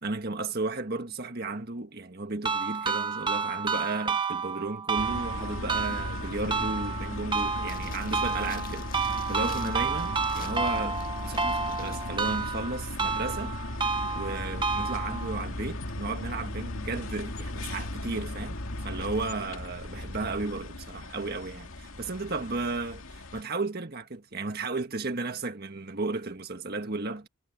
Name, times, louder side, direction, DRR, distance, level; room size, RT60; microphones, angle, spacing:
voice 1, 0.0-13.6 14.1-18.6 18.8-27.3, right 3 dB, 45° right, 1.6 m, -34 dB
sound 1, 2.4-15.4, right 4 dB, 20° right, 1.1 m, -30 dB
sound 2, 5.0-23.4, left 1 dB, 75° left, 2.2 m, -37 dB
sound 3, 7.6-12.1 12.3-12.4, left 8 dB, 40° left, 1.8 m, -49 dB
head